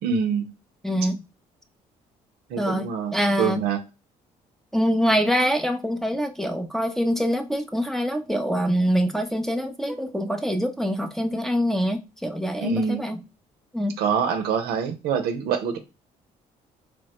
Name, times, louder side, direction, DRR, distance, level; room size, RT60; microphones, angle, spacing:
voice 1, 0.0-0.5 2.5-3.8 12.6-13.1 14.0-15.8, right 6 dB, 75° right, 0.6 m, -25 dB
voice 2, 0.8-1.2 2.6-3.6 4.7-13.2 13.7-14.0, equal, ahead, 0.5 m, -24 dB
3.1 x 2.1 x 2.9 m
supercardioid pair, 65°, 16 cm